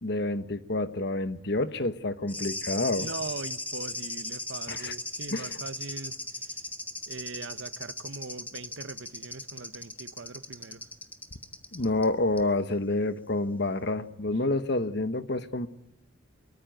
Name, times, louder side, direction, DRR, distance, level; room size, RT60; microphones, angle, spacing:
voice 1, 0.0-3.1 4.7-4.9 5.3-5.5 11.7-15.7, left 2 dB, 55° left, 1.2 m, -28 dB
sound 1, 2.3-12.1 12.4-12.5, left 2 dB, 10° left, 1.3 m, -38 dB
voice 2, 3.0-6.6 7.1-10.9, right 3 dB, 65° right, 1.0 m, -41 dB
24.0 x 22.0 x 9.4 m
head